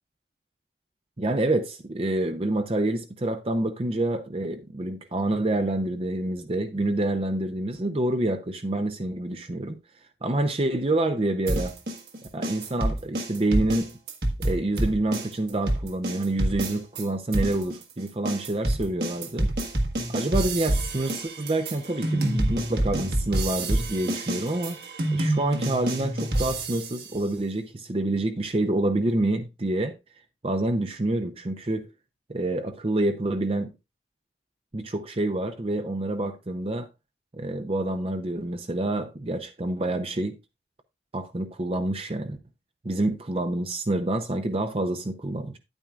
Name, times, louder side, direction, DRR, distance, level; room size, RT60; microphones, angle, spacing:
voice 1, 1.2-9.7 10.2-11.8 12.3-14.0 14.4-19.5 20.1-24.8 25.1-30.0 30.4-31.9 32.3-33.7 34.7-36.9 37.3-40.4 41.1-42.4 42.8-45.6, right 2 dB, 30° right, 0.6 m, -27 dB
sound 1, 11.5-17.0 17.3-27.1, right 1 dB, 60° right, 1.6 m, -27 dB
9.9 x 9.0 x 2.4 m
head